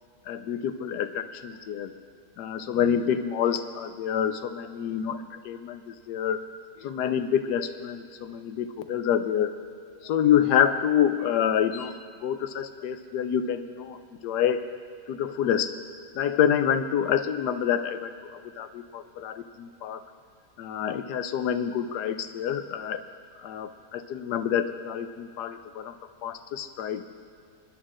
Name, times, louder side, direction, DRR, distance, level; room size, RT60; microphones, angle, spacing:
voice 1, 0.3-1.9 2.4-6.4 6.8-9.5 10.0-11.9 12.2-14.0 14.2-14.6 15.1-15.7 16.1-18.1 18.6-20.0 20.6-23.0 23.4-25.9 26.2-27.0, left 9 dB, 85° left, 10 dB, 1.2 m, -27 dB
28.0 x 11.0 x 2.5 m, 2.2 s
omnidirectional pair, 1.7 m